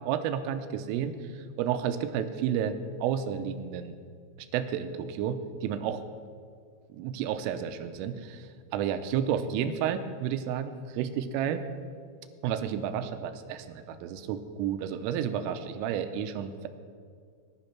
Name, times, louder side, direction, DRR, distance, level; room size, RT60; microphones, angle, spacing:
voice 1, 0.0-4.0 4.5-6.0 6.9-11.6 12.4-16.7, right 8 dB, 90° right, 9 dB, 3.4 m, -31 dB
18.0 x 11.0 x 5.9 m, 2.1 s
omnidirectional pair, 5.7 m